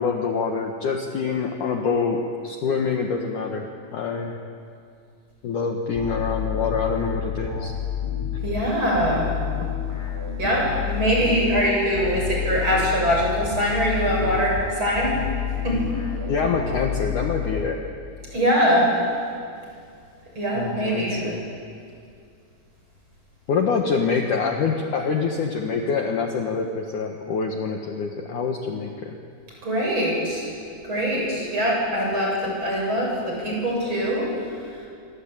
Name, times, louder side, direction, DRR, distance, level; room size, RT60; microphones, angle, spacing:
voice 1, 0.0-4.4 5.4-7.7 16.3-17.8 20.5-21.4 23.5-29.2, left 5 dB, 60° left, 2 dB, 2.5 m, -25 dB
sound 1, 5.9-18.1, left 8 dB, 10° left, 6.3 m, -29 dB
voice 2, 8.4-9.3 10.4-15.2 15.6-15.9 18.3-18.9 20.3-21.2 29.6-30.5 30.8-34.3, equal, 25° right, -2 dB, 8.3 m, -23 dB
27.0 x 24.5 x 9.0 m, 2.3 s
omnidirectional pair, 4.9 m